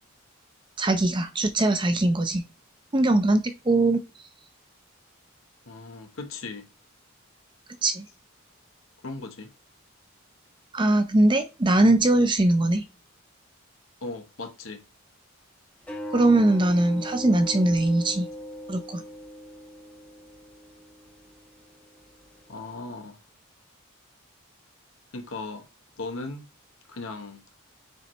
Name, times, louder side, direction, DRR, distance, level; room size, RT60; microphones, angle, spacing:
voice 1, 0.8-2.4 2.9-4.0 7.8-8.1 10.7-12.8 16.1-18.3 18.7-19.0, right 2 dB, 20° right, 0.6 m, -21 dB
voice 2, 5.7-6.7 9.0-9.5 14.0-14.8 22.5-23.2 25.1-25.7 26.0-26.5 26.9-27.4, left 3 dB, 75° left, 1.1 m, -37 dB
sound 1, 15.8-22.7, equal, 5° left, 1.3 m, -40 dB
6.7 x 4.6 x 3.1 m
head